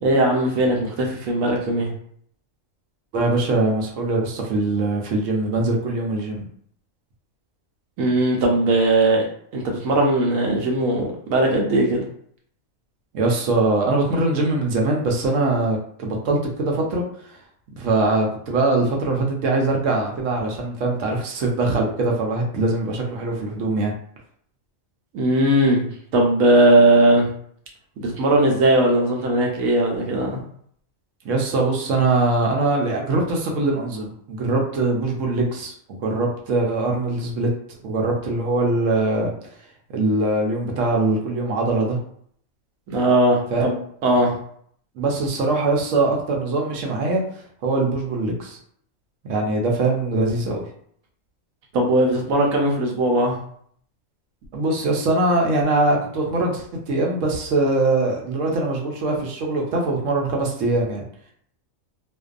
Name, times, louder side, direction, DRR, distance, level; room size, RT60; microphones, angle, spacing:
voice 1, 0.0-1.9 8.0-9.3 9.5-12.0 25.1-25.9 26.1-27.3 28.0-30.4 42.9-43.8 44.0-44.3 51.7-53.4, right 1 dB, 90° right, 0 dB, 1.1 m, -19 dB
voice 2, 3.1-6.4 13.1-17.0 17.8-23.9 31.2-37.5 37.8-39.3 39.9-42.0 43.5-43.7 45.0-47.2 47.6-48.6 49.2-50.7 54.5-61.0, right 2 dB, 75° right, 0 dB, 0.9 m, -22 dB
2.5 x 2.2 x 2.4 m, 0.63 s
omnidirectional pair, 1.4 m